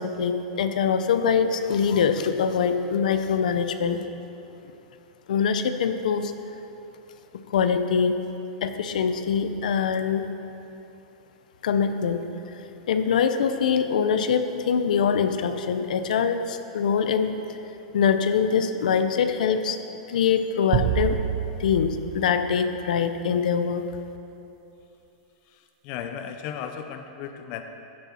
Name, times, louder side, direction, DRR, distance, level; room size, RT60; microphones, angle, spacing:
voice 1, 0.0-4.0 5.3-6.3 7.5-8.2 8.6-10.3 11.6-12.3 12.5-12.6 12.9-17.4 17.9-19.8 20.1-21.2 21.6-23.8, left 6 dB, 80° left, 9 dB, 0.7 m, -23 dB
sound 1, 20.7-23.2, right 11 dB, 35° right, 0.4 m, -28 dB
voice 2, 25.5-27.6, left 8 dB, 40° left, 7 dB, 0.6 m, -36 dB
15.5 x 7.0 x 4.3 m, 2.8 s
supercardioid pair, 160°, 4 cm